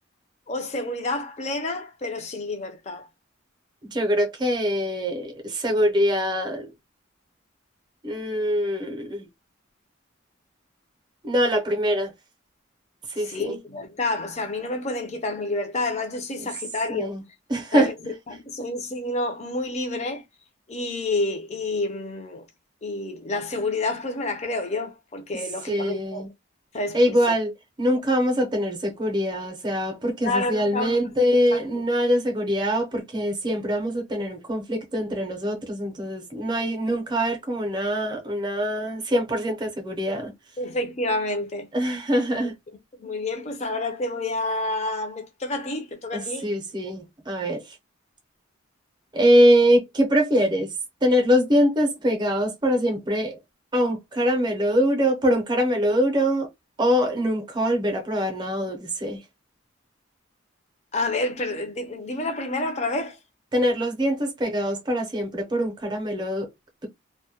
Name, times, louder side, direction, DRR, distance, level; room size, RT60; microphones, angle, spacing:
voice 1, 0.5-3.1 13.2-17.1 17.7-20.2 20.7-22.4 22.8-26.3 26.7-27.3 30.2-31.1 31.5-31.6 40.6-41.7 43.0-46.5 60.9-63.2, left 2 dB, 35° left, 0.5 m, -29 dB
voice 2, 3.8-6.7 8.0-9.3 11.2-12.1 13.1-13.6 16.4-16.5 16.9-17.2 17.5-17.9 25.7-26.3 26.9-27.5 27.8-40.3 41.7-42.5 46.1-47.8 49.1-50.7 51.0-53.4 53.7-56.5 56.8-59.2 63.5-66.5, equal, 20° right, 0.6 m, -23 dB
2.2 x 2.1 x 2.8 m
head